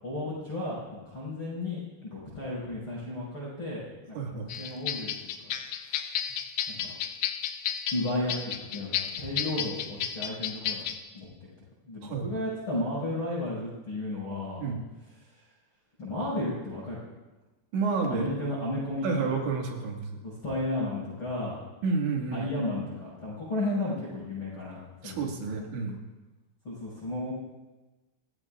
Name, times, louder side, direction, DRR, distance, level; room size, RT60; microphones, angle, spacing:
voice 1, 0.0-5.1 5.4-5.5 5.9-6.0 6.8-6.9 7.9-8.3 8.7-10.8 11.1-11.3 11.8-14.6 16.0-17.0 18.1-19.3 20.2-21.6 22.3-25.4 26.6-27.3, left 1 dB, 30° left, -7 dB, 6.2 m, -33 dB
voice 2, 4.1-4.5 12.0-12.3 14.6-14.8 17.7-18.3 19.0-20.1 21.8-22.5 25.0-26.0, right 4 dB, 80° right, 0 dB, 4.5 m, -30 dB
sound 1, 4.5-11.0, left 9 dB, 75° left, 2.3 m, -32 dB
29.5 x 16.0 x 2.5 m, 1.1 s
omnidirectional pair, 5.2 m